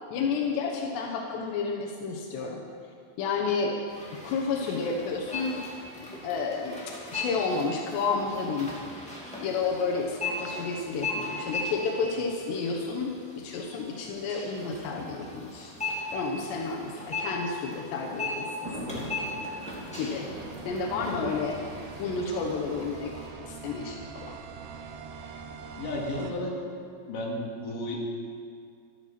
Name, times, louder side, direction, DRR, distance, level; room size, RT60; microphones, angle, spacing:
voice 1, 0.1-2.6 3.2-3.8 4.2-5.7 6.2-8.8 9.4-15.7 16.1-19.1 20.0-20.3 20.7-21.6 22.0-23.1 23.4-24.4, left 4 dB, 85° left, 0 dB, 3.3 m, -31 dB
sound 1, 3.9-23.3, left 2 dB, ahead, 1.7 m, -38 dB
Thunder, 17.5-22.5 23.3-23.4 23.7-23.8 24.8-25.1, right 1 dB, 50° right, 4.7 m, -43 dB
sound 2, 20.4-26.3, right 5 dB, 75° right, 2.6 m, -43 dB
voice 2, 20.9-21.3 25.8-26.5 27.1-28.1, left 1 dB, 55° left, -3 dB, 3.7 m, -33 dB
14.0 x 13.0 x 5.9 m, 2.2 s
omnidirectional pair, 4.8 m